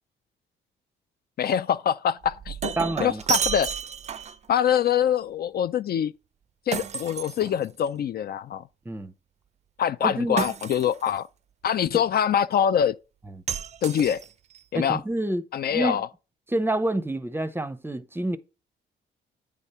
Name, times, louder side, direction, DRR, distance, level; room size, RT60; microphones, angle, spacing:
voice 1, 1.4-2.7 3.0-3.7 4.5-6.1 6.7-8.6 9.8-11.3 11.6-13.0 13.8-14.2 14.7-15.0 15.5-16.1, left 9 dB, 50° left, 0.4 m, -24 dB
Shatter, 2.2-4.5 6.7-8.0 10.4-11.2 13.5-14.6, right 7 dB, 35° right, 0.4 m, -31 dB
voice 2, 2.8-3.2 8.9-9.1 10.0-10.5 11.9-12.0 13.3-13.4 14.7-15.4 15.7-16.0 16.5-18.4, right 1 dB, 10° right, 0.7 m, -28 dB
8.9 x 3.6 x 5.5 m
cardioid pair, 90°, 20 cm